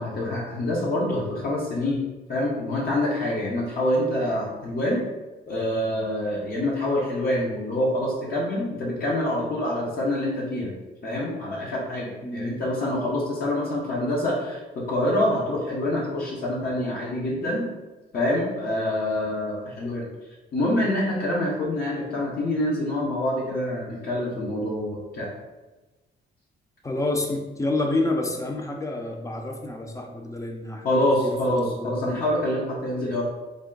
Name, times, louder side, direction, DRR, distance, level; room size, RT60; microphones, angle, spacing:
voice 1, 0.0-2.0 2.3-5.0 5.5-10.7 11.0-17.7 18.1-20.0 20.5-25.3 30.8-33.2, left 1 dB, 50° left, -4 dB, 0.8 m, -26 dB
voice 2, 12.2-12.6 26.8-32.2, left 2 dB, 15° left, 3 dB, 0.5 m, -29 dB
3.5 x 2.1 x 3.8 m, 1.1 s
cardioid pair, 90°, 20 cm